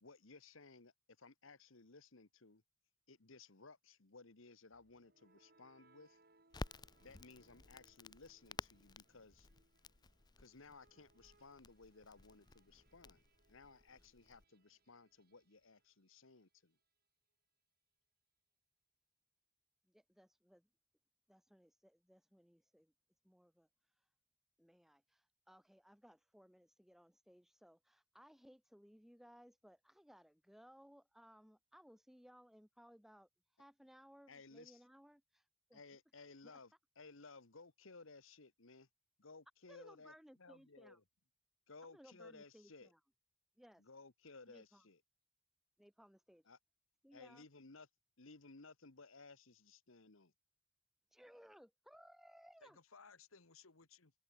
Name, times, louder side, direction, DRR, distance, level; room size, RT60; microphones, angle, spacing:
voice 1, 0.0-2.6 3.1-6.2 7.0-9.5 10.4-16.8 34.3-34.8 35.7-38.9 39.2-40.1 41.7-42.9 43.8-45.0 46.5-46.6 47.1-47.9 48.2-50.3, left 3 dB, 75° left, 1.5 m, -59 dB
sound 1, 4.7-16.6, right 2 dB, 45° right, 3.9 m, -74 dB
Crackle, 6.5-14.4, left 3 dB, 20° left, 0.5 m, -54 dB
voice 2, 19.8-20.7 21.3-22.9 23.2-24.1 24.6-35.8 36.2-36.6 39.7-41.0 41.9-43.0 43.6-43.8 44.5-44.9 45.8-46.5 47.0-47.4 51.1-52.8, equal, ahead, 1.8 m, -63 dB
voice 3, 40.4-41.0 52.6-54.1, left 5 dB, 90° left, 1.8 m, -61 dB
open air
head